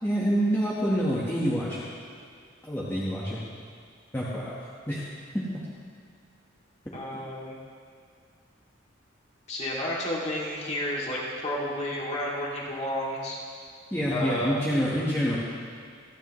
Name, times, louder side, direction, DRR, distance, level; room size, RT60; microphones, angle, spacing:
voice 1, 0.0-1.9 2.6-3.4 4.1-4.5 4.9-5.0 5.3-5.5 13.9-15.4, equal, 15° left, -8 dB, 1.4 m, -27 dB
voice 2, 6.9-7.6 9.5-13.4 14.1-14.6, left 1 dB, 35° left, -5 dB, 2.5 m, -31 dB
27.0 x 10.0 x 3.2 m, 2.3 s
head